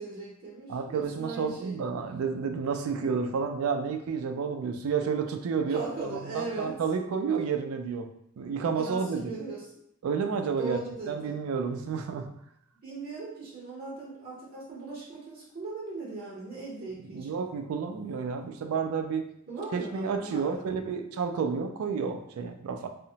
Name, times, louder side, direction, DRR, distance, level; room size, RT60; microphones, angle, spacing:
voice 1, 0.0-1.8 5.7-6.8 8.7-9.7 10.6-11.4 12.8-17.4 19.5-20.7, right 3 dB, 45° right, -5 dB, 0.7 m, -39 dB
voice 2, 0.7-8.1 8.4-9.3 10.0-10.8 11.1-12.3 17.1-19.3 19.7-22.9, right 5 dB, 80° right, 6 dB, 0.3 m, -30 dB
2.8 x 2.0 x 2.7 m, 0.71 s
head